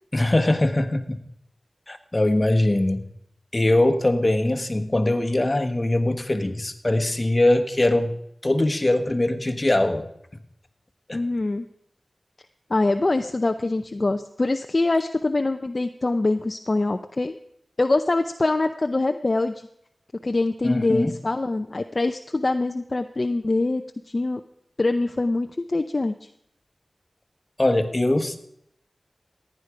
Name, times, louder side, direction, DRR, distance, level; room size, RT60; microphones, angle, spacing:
voice 1, 0.1-1.2 1.9-3.0 3.5-8.1 8.4-10.1 11.1-11.2 20.6-21.2 27.6-28.4, left 1 dB, 30° left, 8 dB, 1.4 m, -21 dB
voice 2, 11.1-11.6 12.7-17.4 17.8-19.7 20.2-23.8 24.1-24.4 24.8-26.3, left 2 dB, 45° left, 6 dB, 0.6 m, -24 dB
15.0 x 9.9 x 4.9 m, 0.74 s
wide cardioid pair, 70°, 0 cm